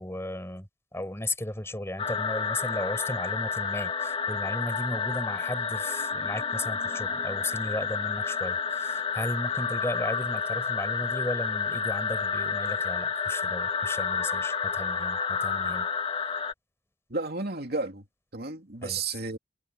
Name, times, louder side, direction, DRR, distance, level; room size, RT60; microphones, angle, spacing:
voice 1, 0.0-15.9 18.8-19.2, left 1 dB, 15° left, 5.8 m, -35 dB
sound 1, 2.0-16.5, left 5 dB, 30° left, 1.8 m, -30 dB
voice 2, 17.1-18.0 18.3-19.4, right 3 dB, 60° right, 3.0 m, -32 dB
head